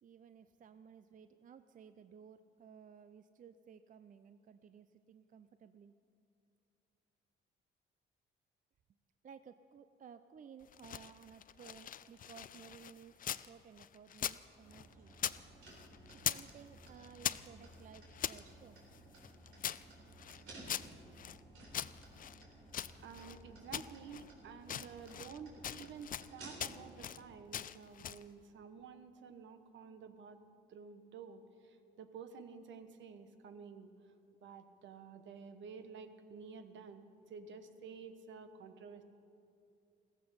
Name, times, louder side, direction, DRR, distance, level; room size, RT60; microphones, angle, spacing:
voice 1, 0.0-5.9 9.2-15.1 16.2-18.8, right 7 dB, 40° right, 11 dB, 0.5 m, -57 dB
sound 1, 10.6-13.5 13.8-15.4 15.7-16.5 16.8-18.4 18.9-21.4 21.7-23.4 23.7-24.3 24.6-25.4 25.6-26.3 26.6-27.2 27.5-28.3, left 9 dB, 45° left, 0.4 m, -42 dB
sound 2, 14.6-27.0, right 2 dB, 90° right, 4.0 m, -56 dB
voice 2, 23.0-30.4 30.7-34.1 34.4-39.0, right 6 dB, 70° right, 9 dB, 1.1 m, -51 dB
15.5 x 14.5 x 5.6 m, 2.6 s
cardioid pair, 90°, 20 cm